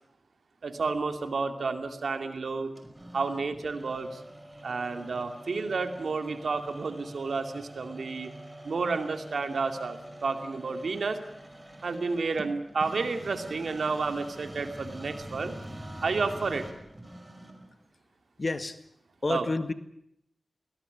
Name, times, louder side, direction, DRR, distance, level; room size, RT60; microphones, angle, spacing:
voice 1, 0.6-2.7 3.1-4.2 4.6-8.3 8.6-11.2 11.8-15.5 16.0-16.7 19.3-19.5, right 4 dB, 80° right, 8 dB, 2.4 m, -31 dB
sound 1, 2.8-17.8, right 1 dB, 25° right, 5.3 m, -45 dB
voice 2, 7.9-8.8 9.5-9.6 10.1-11.0 18.4-18.8 19.2-19.7, left 3 dB, 50° left, 11 dB, 1.8 m, -34 dB
21.0 x 19.0 x 9.2 m, 0.74 s
cardioid pair, 45°, 0 cm